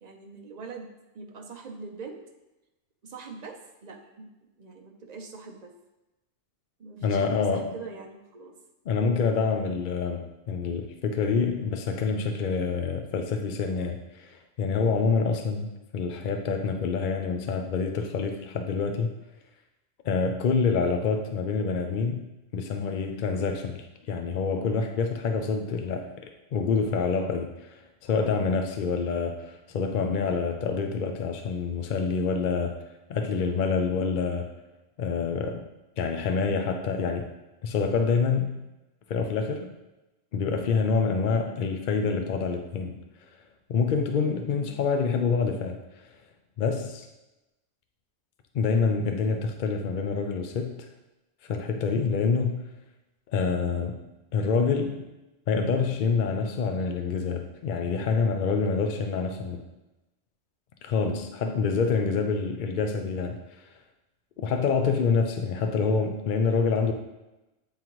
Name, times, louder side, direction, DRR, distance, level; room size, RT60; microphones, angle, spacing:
voice 1, 0.0-0.9 1.1-2.2 3.0-4.3 4.6-5.7 6.8-8.5 44.6-44.8 61.4-61.6, right 4 dB, 45° right, 2 dB, 0.6 m, -42 dB
voice 2, 7.0-7.7 8.9-19.1 20.0-22.2 22.5-26.2 26.5-32.7 33.1-34.5 35.0-35.6 36.0-37.2 37.6-38.5 39.1-39.7 40.3-43.0 43.7-46.1 46.6-47.1 48.5-50.9 51.4-52.7 53.3-54.0 54.3-55.0 55.5-59.6 60.8-63.7 64.4-66.9, left 5 dB, 60° left, 5 dB, 0.5 m, -27 dB
8.6 x 3.8 x 3.0 m, 0.99 s
omnidirectional pair, 1.3 m